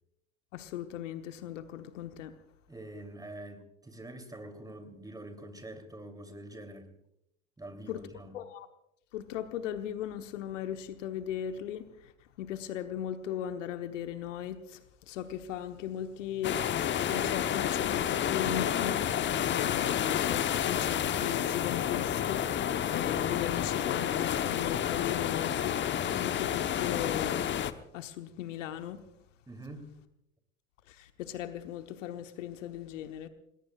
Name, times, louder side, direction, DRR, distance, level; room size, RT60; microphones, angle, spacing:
voice 1, 0.5-2.4 7.9-8.0 8.3-8.7 9.1-12.1 12.4-19.0 19.5-27.4 27.9-29.0 30.9-33.3, left 10 dB, 65° left, 1.3 m, -38 dB
voice 2, 2.7-6.9 7.6-8.4 29.5-29.9, right 1 dB, 10° right, 3.1 m, -45 dB
sound 1, 16.4-27.7, left 10 dB, 25° left, 1.0 m, -30 dB
28.0 x 20.5 x 2.4 m
figure-of-eight pair, 80°, 41 cm